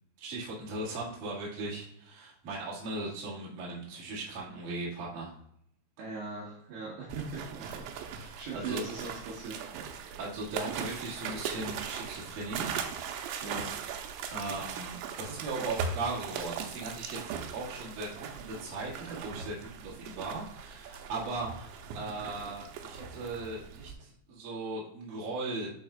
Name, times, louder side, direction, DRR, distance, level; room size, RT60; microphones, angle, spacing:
voice 1, 0.2-5.3 8.1-8.9 10.2-12.7 14.3-25.7, right 2 dB, 55° right, -6 dB, 3.1 m, -38 dB
voice 2, 6.0-7.8 8.4-9.5 13.4-13.7, right 4 dB, 70° right, -6 dB, 3.2 m, -39 dB
sound 1, 7.1-23.9, right 6 dB, 85° right, 2.9 m, -39 dB
10.5 x 4.2 x 2.3 m, 0.70 s
omnidirectional pair, 5.3 m